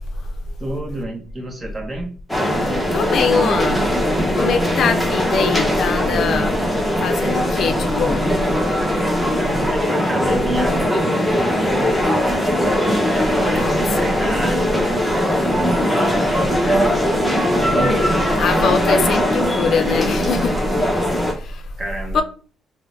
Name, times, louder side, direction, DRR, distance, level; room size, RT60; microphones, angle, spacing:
voice 1, 0.6-2.2 9.4-11.9 12.9-16.5 17.6-18.0 21.8-22.2, right 1 dB, 25° right, 0.9 m, -31 dB
sound 1, 2.3-21.3, equal, 5° left, 0.8 m, -20 dB
voice 2, 2.9-3.8 4.4-6.5 7.0-8.3 13.5-14.1 18.4-20.6 21.4-21.6 22.1-22.2, left 5 dB, 65° left, 0.4 m, -22 dB
3.7 x 2.1 x 2.5 m
cardioid pair, 90°, 0 cm